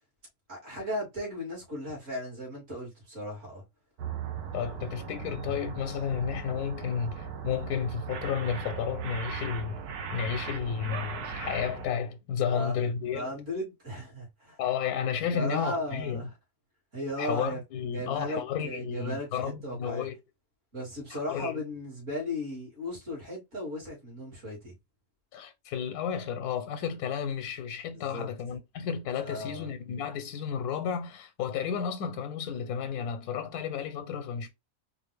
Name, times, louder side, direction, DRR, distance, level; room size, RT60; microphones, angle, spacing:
voice 1, 0.5-3.6 12.5-12.8 13.1-14.6 15.3-16.3 16.9-20.1 20.7-24.7 27.9-28.3 29.2-29.7, left 1 dB, 55° right, 2.6 m, -36 dB
sound 1, 4.0-11.9, right 6 dB, 80° right, 1.3 m, -38 dB
voice 2, 4.5-9.8 10.1-13.4 14.6-16.3 17.2-20.1 21.1-21.6 25.3-34.5, left 7 dB, 85° left, 1.1 m, -32 dB
4.4 x 2.5 x 3.2 m
omnidirectional pair, 1.6 m